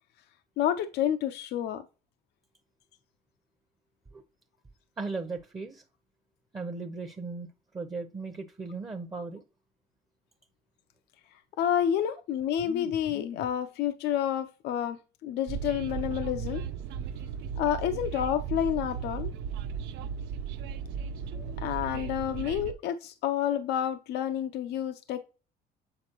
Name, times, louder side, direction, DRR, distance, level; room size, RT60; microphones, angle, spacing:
voice 1, 0.6-1.8 11.6-16.6 17.6-19.3 21.3-25.2, left 10 dB, 80° left, 0.6 m, -29 dB
voice 2, 5.0-5.8 6.5-9.4 22.0-22.1, right 3 dB, 20° right, 0.8 m, -37 dB
Train, 15.5-22.7, right 7 dB, 80° right, 0.5 m, -36 dB
7.7 x 4.2 x 3.0 m
cardioid pair, 110°, 17 cm